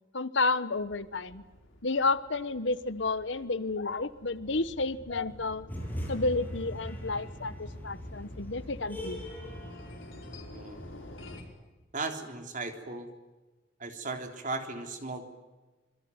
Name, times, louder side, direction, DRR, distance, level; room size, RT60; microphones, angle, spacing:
voice 1, 0.1-1.4 1.8-5.6 6.1-9.2, left 3 dB, 65° left, 14 dB, 1.2 m, -31 dB
sound 1, 0.7-11.4, left 1 dB, 80° left, 5.2 m, -51 dB
sound 2, 5.7-11.4, equal, 10° left, 7.8 m, -41 dB
voice 2, 11.9-13.1 13.8-15.2, right 3 dB, 40° right, 5 dB, 3.6 m, -36 dB
26.5 x 22.0 x 9.6 m, 1.2 s
head